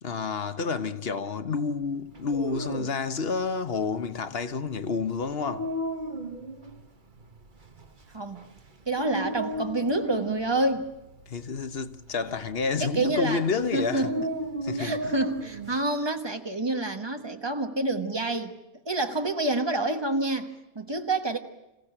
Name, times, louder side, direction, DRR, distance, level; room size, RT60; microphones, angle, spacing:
voice 1, 0.0-5.7 11.3-14.1 14.6-15.1, left 5 dB, 65° left, 1.2 m, -29 dB
Dog, 2.1-15.8, right 1 dB, 50° right, 1.6 m, -36 dB
voice 2, 8.1-8.4 8.9-10.9 12.8-13.4 13.7-14.3 14.8-18.5 18.8-21.4, right 2 dB, 25° right, 1.4 m, -28 dB
26.5 x 15.5 x 10.0 m
omnidirectional pair, 1.1 m